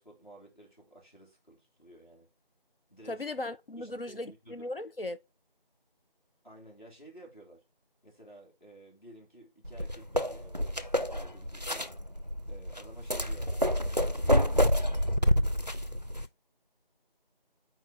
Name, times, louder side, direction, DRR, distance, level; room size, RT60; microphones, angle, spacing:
voice 1, 0.0-2.3 2.9-3.2 3.7-4.7 6.4-7.6 8.0-11.9 12.5-15.5, right 1 dB, 55° left, 2.9 m, -54 dB
voice 2, 3.1-5.2, left 2 dB, 70° left, 0.7 m, -37 dB
sound 1, 9.6-16.3, equal, 45° right, 0.4 m, -28 dB
4.6 x 4.4 x 5.0 m
figure-of-eight pair, 180°, 29 cm